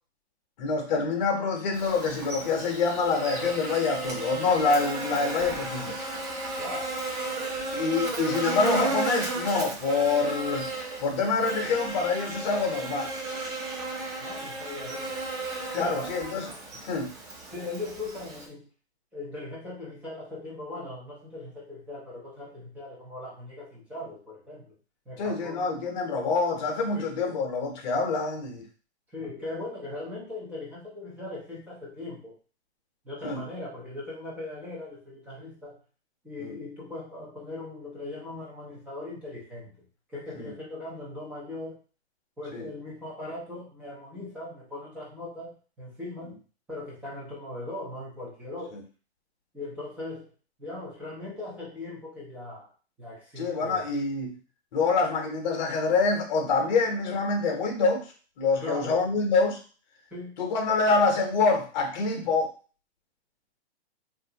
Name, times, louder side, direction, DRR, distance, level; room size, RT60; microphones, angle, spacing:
voice 1, 0.6-6.0 7.7-10.7 11.0-13.1 15.7-16.5 16.8-17.1 25.2-28.6 33.2-33.4 36.4-36.5 40.3-40.5 42.5-42.7 53.4-54.4 54.7-58.0 58.4-59.6 60.4-62.5, left 4 dB, 40° left, 2 dB, 0.9 m, -26 dB
Buzz, 1.7-18.5, right 2 dB, 35° right, 0.9 m, -34 dB
voice 2, 6.6-6.9 14.2-15.2 15.7-16.1 17.5-18.7 19.1-24.7 25.1-25.7 26.9-27.4 29.1-32.3 33.0-35.8 36.2-39.7 40.1-41.8 42.4-46.4 46.7-48.8 49.5-50.3 50.6-52.7 53.0-53.8 58.6-59.0 60.1-60.4, left 2 dB, 5° right, -7 dB, 0.6 m, -39 dB
3.2 x 2.6 x 2.8 m, 0.37 s
hypercardioid pair, 155°, 34 cm